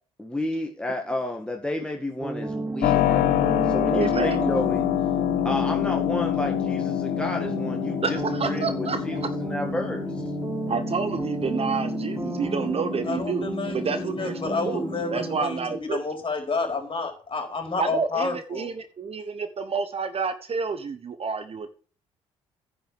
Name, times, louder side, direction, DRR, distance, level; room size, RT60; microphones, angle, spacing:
voice 1, 0.2-4.9 5.4-10.1, left 1 dB, 5° left, 2 dB, 2.0 m, -31 dB
sound 1, 2.2-15.4, right 3 dB, 15° right, 0.7 m, -32 dB
Keyboard (musical), 2.8-15.5, left 14 dB, 65° left, 0.8 m, -28 dB
voice 2, 3.9-4.6 8.0-9.0 10.7-13.5 13.7-16.0 17.8-21.7, right 5 dB, 40° right, 11 dB, 1.2 m, -29 dB
voice 3, 13.1-18.7, left 3 dB, 35° left, 4 dB, 4.2 m, -30 dB
10.0 x 6.2 x 7.4 m, 0.40 s
hypercardioid pair, 55°, 15 cm